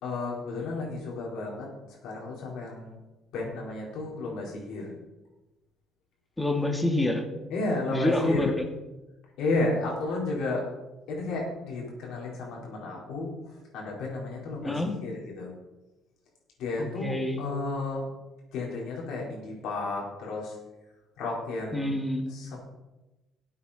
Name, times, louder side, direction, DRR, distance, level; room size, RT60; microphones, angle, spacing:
voice 1, 0.0-1.7 2.0-3.0 3.3-4.9 7.5-8.6 9.4-10.7 11.1-13.3 13.7-15.5 16.6-18.0 18.5-20.5 21.2-21.9 22.3-22.6, left 3 dB, 80° left, -2 dB, 4.5 m, -32 dB
voice 2, 6.4-7.3 7.9-8.6 14.6-14.9 16.8-17.4 21.7-22.3, left 1 dB, 10° left, 4 dB, 2.2 m, -27 dB
13.5 x 8.6 x 4.3 m, 1.1 s
supercardioid pair, 75°, 0 cm